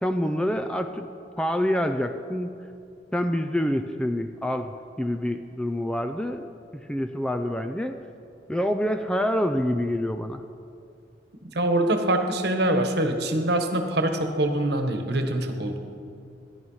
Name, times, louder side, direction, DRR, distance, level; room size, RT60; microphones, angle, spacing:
voice 1, 0.0-1.1 1.4-2.5 3.1-4.7 5.0-8.0 8.5-10.4, equal, 5° left, 7 dB, 0.4 m, -27 dB
voice 2, 11.5-15.8, right 1 dB, 60° right, 5 dB, 1.3 m, -24 dB
14.5 x 10.5 x 5.6 m, 2.5 s
head